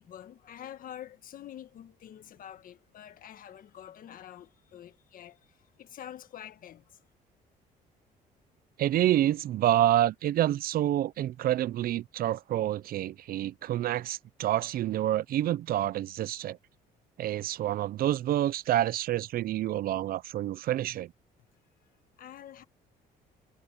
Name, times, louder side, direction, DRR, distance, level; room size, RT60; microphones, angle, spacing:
voice 1, 0.0-7.0 22.2-22.6, left 10 dB, 55° left, 1.5 m, -47 dB
voice 2, 8.8-16.6 17.2-21.1, right 12 dB, 60° right, 0.6 m, -28 dB
cardioid pair, 110°, 17 cm